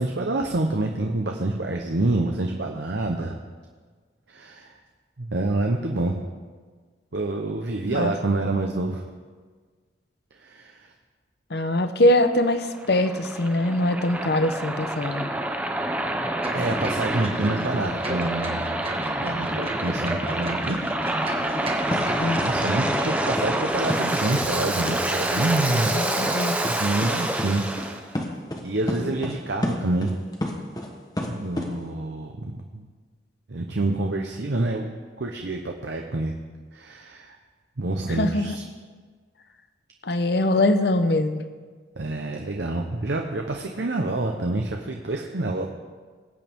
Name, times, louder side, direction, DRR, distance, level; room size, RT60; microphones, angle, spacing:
voice 1, 0.0-3.4 4.3-4.7 5.2-6.2 7.1-9.0 10.4-10.8 16.5-18.8 19.2-20.8 22.4-25.9 26.8-27.6 28.6-30.1 31.3-32.9 33.5-36.3 36.7-37.3 37.8-38.6 42.0-45.7, right 2 dB, 70° right, 2 dB, 0.9 m, -27 dB
voice 2, 11.5-15.3 22.2-22.4 25.9-26.6 38.1-38.6 40.0-41.4, left 1 dB, 60° left, 8 dB, 0.8 m, -22 dB
Waves surf, 12.2-28.0, right 1 dB, 10° right, 0.7 m, -27 dB
sound 1, 16.4-22.7 23.0-23.1, right 1 dB, 30° right, 1.6 m, -34 dB
sound 2, 21.9-22.1 22.4-22.5 22.9-23.0 23.4-23.5 23.9-24.0 24.4-24.5 24.9-25.0 25.4-25.5 25.9-26.0 26.3-26.4 26.6-26.8 27.0-27.1 27.4-27.5 27.8-27.9 28.1-28.6 28.9-29.4 29.6-30.9 31.2-31.7, left 1 dB, 20° left, 1.2 m, -29 dB
20.5 x 8.7 x 3.6 m, 1.5 s
head